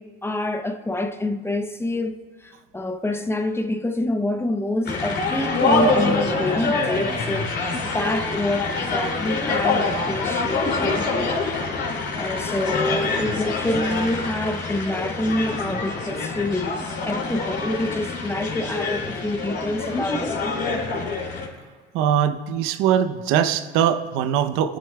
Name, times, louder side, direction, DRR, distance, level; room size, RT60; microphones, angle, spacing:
voice 1, 0.0-11.5 12.1-20.4, left 1 dB, 10° left, 0.6 m, -27 dB
sound 1, 4.9-21.5, left 3 dB, 55° left, 2.7 m, -25 dB
voice 2, 21.9-24.8, right 9 dB, 80° right, 0.7 m, -21 dB
27.5 x 9.9 x 2.3 m
supercardioid pair, 85°, 21 cm